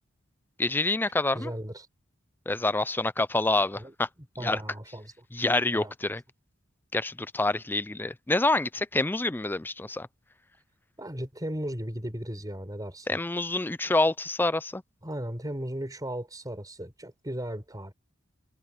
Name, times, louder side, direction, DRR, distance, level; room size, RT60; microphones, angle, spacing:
voice 1, 0.6-1.5 2.5-4.1 4.4-4.6 5.3-6.2 6.9-10.1 13.1-14.8, left 2 dB, 10° left, 0.4 m, -27 dB
voice 2, 1.3-1.9 3.8-3.9 4.4-5.2 5.7-5.9 11.0-13.2 15.0-17.9, right 1 dB, 20° right, 4.8 m, -36 dB
head